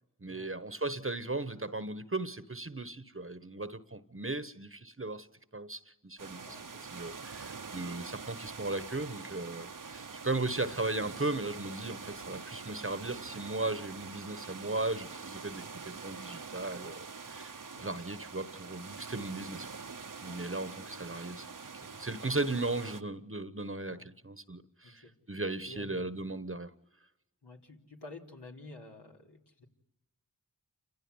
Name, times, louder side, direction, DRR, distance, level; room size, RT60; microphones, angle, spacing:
voice 1, 0.2-5.3 5.5-6.5 6.9-17.5 17.8-19.7 20.2-21.5 22.0-26.7, right 2 dB, 35° right, 1.2 m, -37 dB
sound 1, 6.2-23.0, right 5 dB, 55° right, 0.9 m, -45 dB
voice 2, 20.2-21.0 21.9-22.0 23.9-24.0 24.8-25.1 25.6-26.3 27.4-29.6, left 2 dB, 85° left, 4.1 m, -51 dB
29.5 x 16.0 x 9.7 m
wide cardioid pair, 55°, 39 cm